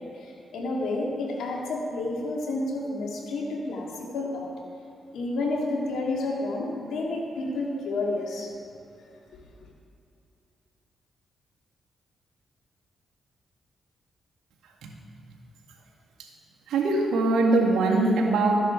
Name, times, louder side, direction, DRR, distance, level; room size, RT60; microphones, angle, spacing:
voice 1, 0.0-4.5 5.1-8.5 9.3-9.4, left 2 dB, 80° left, -2 dB, 2.4 m, -30 dB
voice 2, 16.7-18.6, right 2 dB, 80° right, 0 dB, 1.9 m, -22 dB
13.5 x 10.5 x 4.7 m, 2.4 s
supercardioid pair, 55°, 0 cm